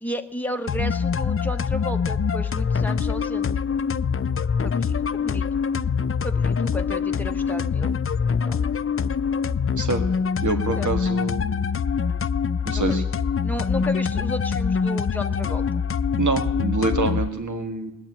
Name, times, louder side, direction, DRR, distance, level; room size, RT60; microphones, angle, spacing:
voice 1, 0.0-3.5 4.6-5.5 6.2-7.9 8.4-8.6 10.8-10.9 12.7-13.0 13.4-15.8, equal, 5° left, 5 dB, 1.1 m, -33 dB
sound 1, 0.7-17.3, left 6 dB, 45° left, 0.5 m, -24 dB
voice 2, 10.4-11.4 12.6-13.0 16.2-17.9, right 3 dB, 65° right, 6 dB, 1.7 m, -25 dB
19.5 x 7.4 x 9.7 m, 0.95 s
wide cardioid pair, 45°, 33 cm